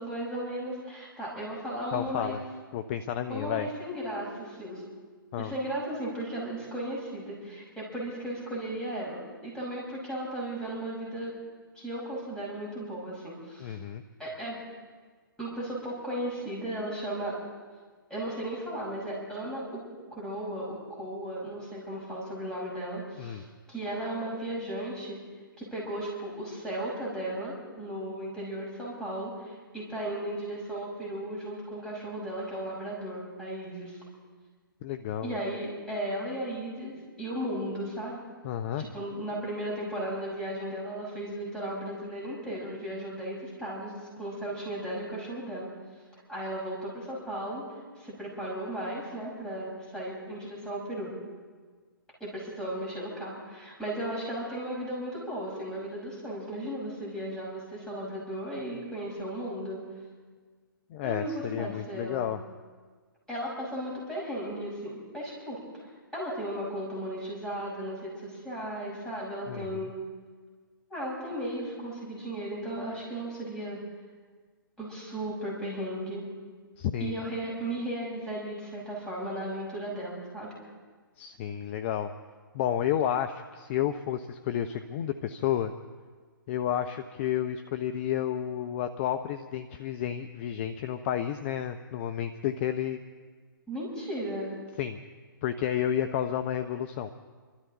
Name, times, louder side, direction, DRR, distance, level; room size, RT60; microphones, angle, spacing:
voice 1, 0.0-2.4 3.3-4.8 5.4-11.4 11.7-13.8 14.2-14.6 15.4-17.4 18.1-19.8 20.1-25.2 25.6-34.0 35.2-38.2 38.8-45.7 46.3-47.6 48.0-51.1 52.2-59.8 61.0-62.3 63.3-70.0 70.9-73.8 74.8-76.3 77.0-80.5 93.7-94.5, right 1 dB, 5° left, -6 dB, 6.3 m, -35 dB
voice 2, 1.9-2.4 2.7-3.7 5.3-5.5 13.6-14.0 23.2-23.4 34.8-35.3 38.4-38.8 60.9-62.4 69.5-69.8 76.8-77.2 81.2-82.1 82.5-85.7 86.5-93.0 94.8-95.0 95.4-97.1, left 10 dB, 35° left, 8 dB, 0.7 m, -31 dB
28.5 x 13.0 x 3.9 m, 1.5 s
figure-of-eight pair, 125°, 12 cm